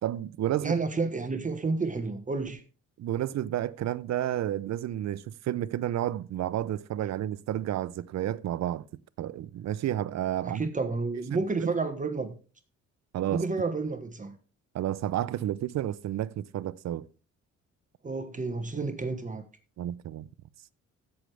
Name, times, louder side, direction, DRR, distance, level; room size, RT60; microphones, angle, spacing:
voice 1, 0.0-0.7 3.0-8.8 9.2-10.6 11.3-11.4 13.1-13.4 14.7-17.1 19.8-20.3, right 12 dB, 60° right, 0.6 m, -31 dB
voice 2, 0.6-2.6 10.4-12.4 13.3-14.4 18.0-19.4, right 3 dB, 25° right, 1.3 m, -30 dB
15.5 x 6.4 x 3.4 m
cardioid pair, 90°, 30 cm